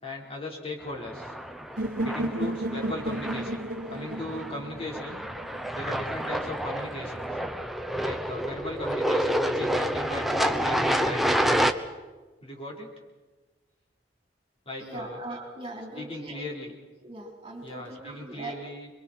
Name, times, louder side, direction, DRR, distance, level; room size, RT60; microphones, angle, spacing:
voice 1, 0.0-1.3 2.0-3.6 3.9-5.3 5.7-7.4 8.0-11.4 12.4-12.9 14.7-15.2 15.9-16.7 17.6-18.9, left 1 dB, 35° left, -2 dB, 4.0 m, -37 dB
sound 1, 1.0-11.7, equal, ahead, 0.9 m, -29 dB
sound 2, 1.8-5.7, right 1 dB, 55° right, 1.4 m, -33 dB
voice 2, 14.8-16.5 17.0-18.5, right 2 dB, 30° right, 0 dB, 3.7 m, -40 dB
29.5 x 22.5 x 4.4 m, 1.3 s
head